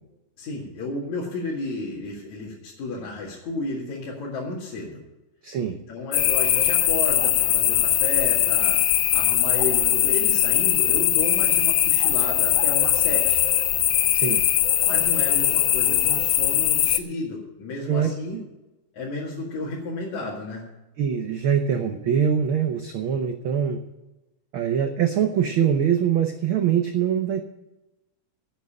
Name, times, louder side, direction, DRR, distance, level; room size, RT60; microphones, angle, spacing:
voice 1, 0.4-5.0 5.7-8.8 9.1-13.4 14.9-18.4 18.9-20.6, left 2 dB, 70° left, -5 dB, 3.3 m, -32 dB
voice 2, 5.4-5.8 14.1-14.4 17.9-18.4 21.0-23.8 24.5-27.4, right 8 dB, 90° right, 6 dB, 1.1 m, -23 dB
sound 1, 6.1-17.0, left 13 dB, 90° left, 1.3 m, -21 dB
11.0 x 8.0 x 8.8 m, 1.0 s
omnidirectional pair, 3.5 m